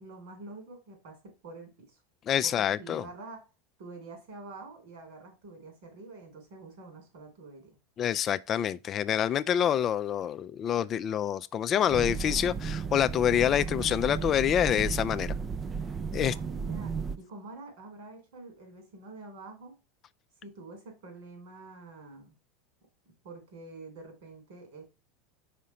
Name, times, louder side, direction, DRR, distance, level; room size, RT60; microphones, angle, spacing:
voice 1, 0.0-2.0 2.4-2.5 2.8-3.4 3.8-7.8 16.3-19.8 20.4-22.3 23.2-24.9, right 3 dB, 70° right, 3.4 m, -47 dB
voice 2, 2.3-3.0 8.0-15.3 16.1-16.3, left 9 dB, 40° left, 0.3 m, -27 dB
sound 1, 11.9-17.2, right 5 dB, 30° right, 0.4 m, -34 dB
5.1 x 3.7 x 5.6 m
hypercardioid pair, 90°, 0 cm